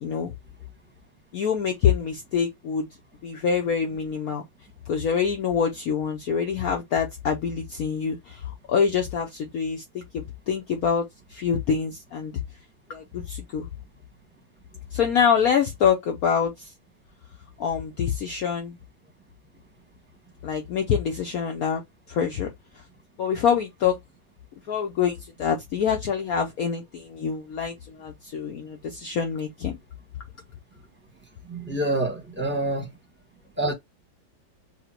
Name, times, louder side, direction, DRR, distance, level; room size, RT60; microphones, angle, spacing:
voice 1, 0.0-0.3 1.3-2.9 3.2-4.4 4.9-11.0 11.3-12.4 12.9-13.7 14.9-16.7 17.6-18.8 20.4-21.8 22.1-22.5 22.7-22.8 23.2-23.9 24.7-29.7, left 7 dB, 60° left, 1.1 m, -25 dB
voice 2, 31.4-32.9 33.6-33.7, right 2 dB, 10° right, 1.0 m, -26 dB
5.0 x 2.2 x 4.3 m
omnidirectional pair, 2.0 m